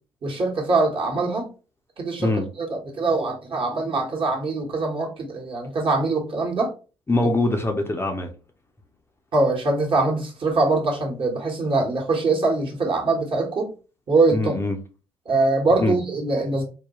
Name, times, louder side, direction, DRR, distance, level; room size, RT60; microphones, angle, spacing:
voice 1, 0.2-1.5 2.0-2.3 2.6-6.7 9.3-13.7 14.1-14.5 15.2-16.6, right 3 dB, 40° right, 1.3 m, -23 dB
voice 2, 7.1-8.3 14.3-14.8 15.8-16.0, left 2 dB, 20° left, 0.7 m, -23 dB
4.0 x 2.2 x 3.0 m
figure-of-eight pair, 50°, 13 cm